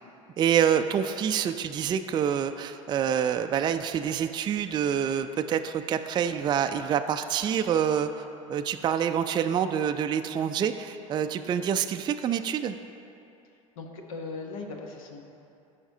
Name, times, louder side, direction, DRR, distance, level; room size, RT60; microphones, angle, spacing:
voice 1, 0.4-8.1 8.5-12.8, right 8 dB, 25° right, 8 dB, 0.3 m, -26 dB
voice 2, 13.4-15.2, left 3 dB, 70° left, 3 dB, 1.0 m, -39 dB
14.0 x 5.1 x 2.7 m, 2.7 s
hypercardioid pair, 80°, 18 cm